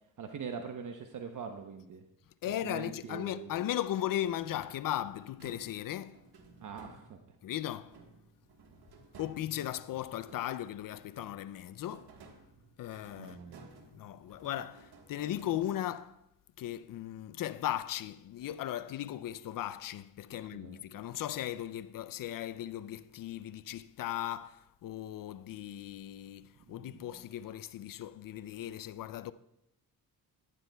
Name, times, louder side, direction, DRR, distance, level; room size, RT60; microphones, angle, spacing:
voice 1, 0.2-2.0 2.6-3.5 6.6-7.2 13.2-13.7 20.3-20.8 26.7-27.2, right 6 dB, 55° right, 0.9 m, -43 dB
voice 2, 2.4-6.2 7.4-8.0 9.2-12.1 12.8-13.4 13.9-16.2 16.6-29.3, left 12 dB, 60° left, 0.5 m, -37 dB
sound 1, 4.4-7.4 7.9-10.7 11.1-16.0, right 3 dB, 80° right, 1.5 m, -56 dB
13.0 x 11.0 x 2.3 m
cardioid pair, 80°, 37 cm